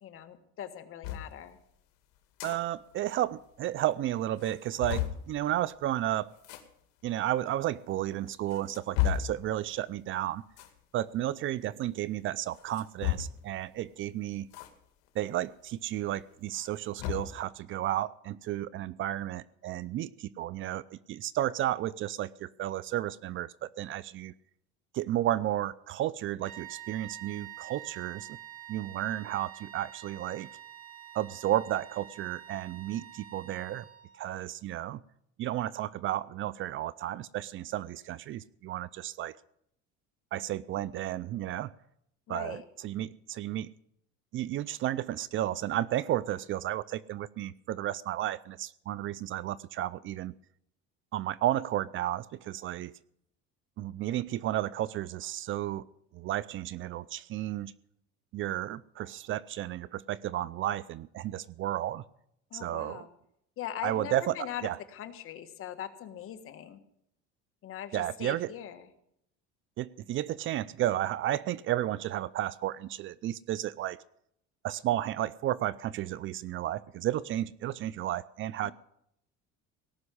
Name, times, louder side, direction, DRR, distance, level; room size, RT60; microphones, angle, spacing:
voice 1, 0.0-1.6 42.3-42.6 62.5-63.1 63.6-66.8 67.6-68.9 78.6-78.7, left 10 dB, 45° left, 8 dB, 1.6 m, -41 dB
sound 1, 1.0-1.3 2.2-2.6 2.9-3.0 3.2-3.3 3.9-4.0 4.4-5.2 6.4-6.6 7.5-7.6 8.3-9.4 10.5-10.8 12.5-13.5 14.5-14.7 15.1-15.2 16.4-17.4, left 12 dB, 80° left, 2.3 m, -33 dB
voice 2, 2.4-6.3 7.0-10.4 10.9-14.5 15.2-24.3 24.9-28.3 28.7-30.5 31.1-33.9 34.2-35.0 35.4-39.3 40.3-41.7 42.3-43.7 44.3-50.3 51.1-52.9 53.8-55.9 56.1-57.7 58.3-62.0 62.5-63.1 63.8-64.4 64.6-64.8 67.9-68.5 69.8-74.0 74.6-78.7, right 13 dB, 45° right, 19 dB, 0.5 m, -32 dB
sound 2, 26.4-34.3, right 12 dB, 25° right, 3.4 m, -48 dB
18.0 x 6.2 x 9.8 m, 0.74 s
cardioid pair, 135°, 29 cm